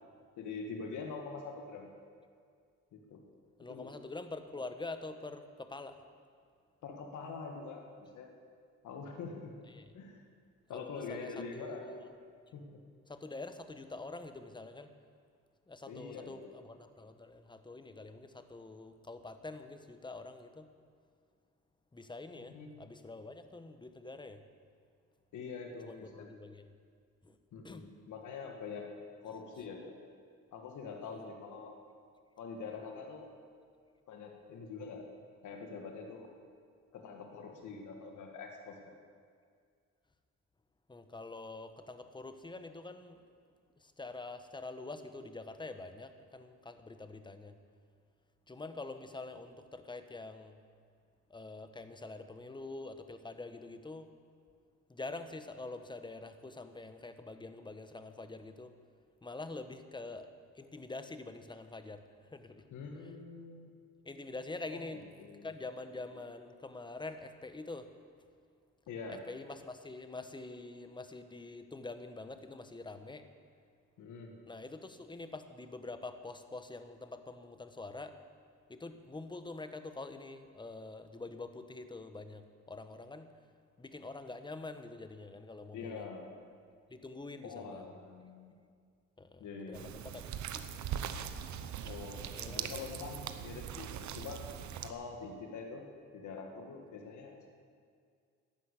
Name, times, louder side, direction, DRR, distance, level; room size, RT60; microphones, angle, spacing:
voice 1, 0.4-1.9 2.9-3.2 3.7-3.9 6.8-8.3 8.8-9.6 9.9-10.2 10.7-11.9 12.5-12.8 15.9-16.5 22.4-22.8 25.3-26.3 27.5-28.9 29.2-29.9 30.5-31.8 32.4-33.3 34.1-35.1 35.4-36.3 36.9-38.9 62.7-63.8 64.7-65.5 68.9-69.2 74.0-74.4 85.7-86.3 87.4-88.6 89.4-89.9 91.8-92.2 92.5-94.4 94.8-95.9 96.1-97.5, left 4 dB, 75° left, 2 dB, 1.7 m, -45 dB
voice 2, 3.6-6.0 9.7-10.0 10.7-12.1 13.1-14.9 15.7-20.7 21.9-24.4 25.8-26.7 27.2-27.4 27.6-27.8 31.1-31.3 40.9-43.2 44.0-47.5 48.5-50.6 51.3-54.1 54.9-58.7 59.2-60.3 60.6-62.0 62.3-62.6 64.0-65.0 65.4-67.9 69.1-73.3 74.5-78.2 78.7-83.3 83.8-86.0 86.9-87.8 89.2-90.8 92.3-92.7, left 3 dB, 15° left, 9 dB, 1.1 m, -46 dB
sound 1, 89.7-94.9, right 9 dB, 70° right, 0.9 m, -41 dB
11.5 x 10.5 x 8.3 m, 2.2 s
cardioid pair, 90°, 30 cm